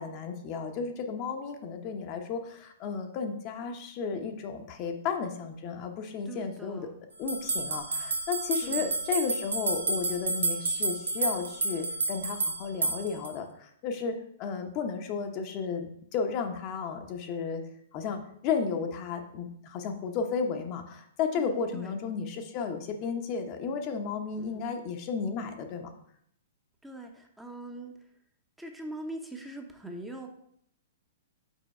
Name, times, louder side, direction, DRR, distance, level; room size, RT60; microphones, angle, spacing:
voice 1, 0.0-6.9 7.2-17.6 17.9-25.9, left 5 dB, 40° left, 5 dB, 0.8 m, -33 dB
voice 2, 6.2-7.0 8.6-8.9 21.3-21.9 24.4-24.6 26.8-27.9 28.6-30.3, right 1 dB, 5° right, 2 dB, 0.8 m, -42 dB
sound 1, 7.3-13.3, right 3 dB, 80° right, 0.8 m, -30 dB
5.5 x 4.4 x 4.3 m, 0.70 s
hypercardioid pair, 115°, 0 cm